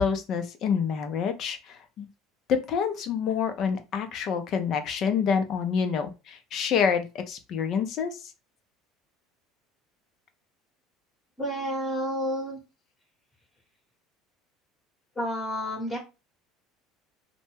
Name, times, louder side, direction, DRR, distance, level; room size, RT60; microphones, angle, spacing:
voice 1, 0.0-2.1 2.5-8.3, left 6 dB, 55° left, 8 dB, 0.5 m, -27 dB
voice 2, 11.4-12.6 15.2-16.0, equal, 20° left, -3 dB, 1.0 m, -30 dB
2.1 x 2.1 x 3.1 m, 0.28 s
supercardioid pair, 90°, 0 cm